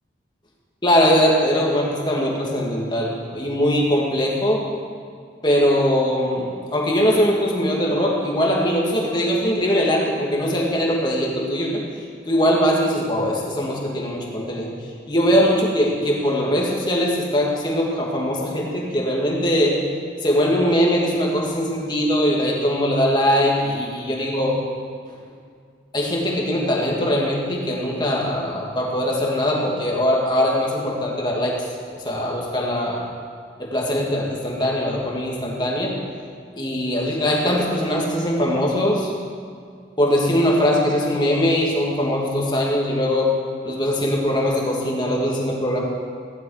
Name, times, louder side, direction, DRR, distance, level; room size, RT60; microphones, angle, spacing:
voice 1, 0.8-4.6 5.4-11.8 12.3-14.7 15.1-19.8 20.2-24.6 25.9-31.5 31.9-33.0 33.6-36.0 36.5-39.1 40.0-43.3 43.6-45.8, equal, 25° left, -2 dB, 2.2 m, -21 dB
15.5 x 11.5 x 4.9 m, 2.1 s
head